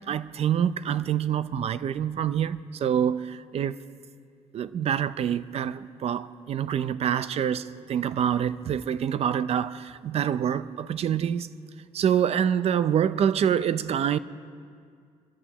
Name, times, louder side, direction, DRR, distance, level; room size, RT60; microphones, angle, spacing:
voice 1, 0.1-3.8 4.5-11.5 11.9-14.2, right 9 dB, 55° right, 0.5 m, -26 dB
25.5 x 14.0 x 3.0 m
cardioid pair, 100°, 12 cm